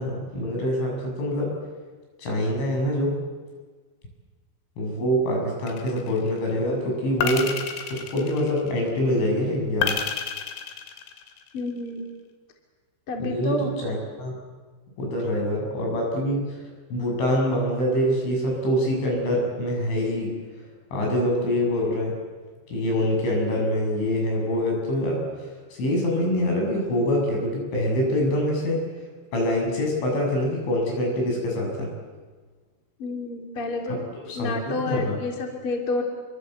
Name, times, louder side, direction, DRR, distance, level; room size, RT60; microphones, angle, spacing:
voice 1, 0.0-1.6 2.2-3.2 4.8-7.6 7.9-10.0 13.2-14.3 15.0-16.6 16.9-20.3 20.9-22.1 22.7-28.8 29.3-31.9 33.9-35.2, equal, 65° left, 0 dB, 9.6 m, -25 dB
sound 1, 5.7-6.3 7.2-8.9 9.8-11.6, left 7 dB, 90° left, 5.0 m, -30 dB
voice 2, 11.5-12.0 13.1-13.7 33.0-34.0 34.3-36.0, left 2 dB, 30° left, 2 dB, 3.2 m, -29 dB
28.5 x 24.5 x 8.1 m, 1.4 s
omnidirectional pair, 5.9 m